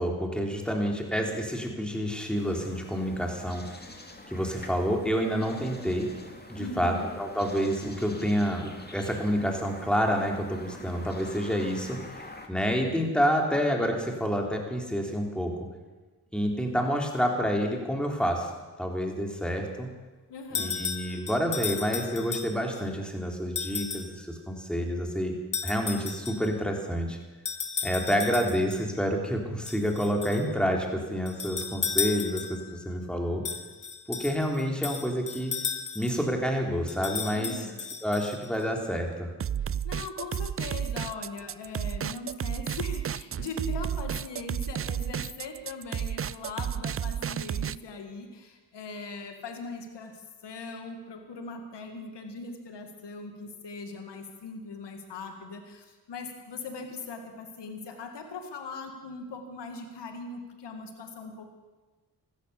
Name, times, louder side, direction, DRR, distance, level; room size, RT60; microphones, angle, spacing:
voice 1, 0.0-3.8 4.3-6.1 6.5-15.5 16.3-18.5 18.8-19.9 20.5-25.3 25.6-27.2 27.8-33.4 34.1-35.5 35.9-37.5 38.0-39.3, equal, ahead, 2 dB, 3.7 m, -28 dB
sound 1, 2.4-12.5, left 2 dB, 25° left, 2.4 m, -46 dB
voice 2, 6.6-7.1 20.3-20.8 37.3-37.8 39.6-61.5, left 3 dB, 80° left, 5 dB, 2.2 m, -40 dB
sound 2, 20.5-22.8 23.6-24.1 25.5-26.5 27.4-28.8 29.7-30.5 31.3-32.7 33.4-36.2 36.9-38.6, left 6 dB, 50° left, 1.9 m, -34 dB
sound 3, 39.4-47.8, right 9 dB, 35° right, 0.4 m, -32 dB
15.0 x 14.0 x 7.0 m, 1.2 s
cardioid pair, 50°, 41 cm